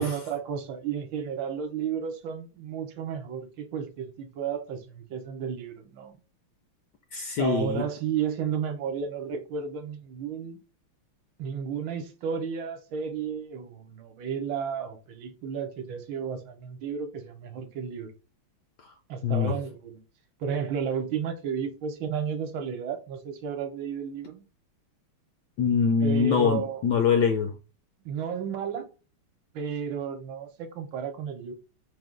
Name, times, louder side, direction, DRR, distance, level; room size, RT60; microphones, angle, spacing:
voice 1, 0.0-6.2 7.4-10.6 11.4-18.1 19.1-20.0 20.4-24.4 26.0-26.8 28.0-28.9 29.5-31.5, right 7 dB, 70° right, 1.3 m, -33 dB
voice 2, 7.1-7.8 19.2-19.5 25.6-27.5, left 6 dB, 75° left, 1.0 m, -24 dB
4.7 x 2.2 x 3.6 m
omnidirectional pair, 2.3 m